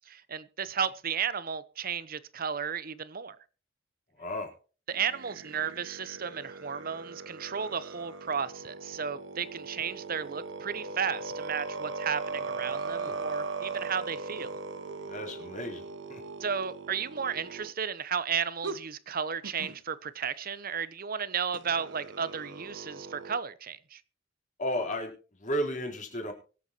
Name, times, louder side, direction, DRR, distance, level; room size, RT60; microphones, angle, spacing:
voice 1, 0.1-3.4 4.9-14.6 16.4-24.0, right 7 dB, 50° right, 0.9 m, -34 dB
voice 2, 4.2-4.5 13.0-13.1 15.1-16.2 24.6-26.3, equal, 40° left, 4.0 m, -34 dB
sound 1, 4.9-17.7 18.6-18.8 19.4-19.8 21.5-23.4, right 4 dB, 75° right, 0.9 m, -39 dB
24.0 x 8.1 x 3.0 m
head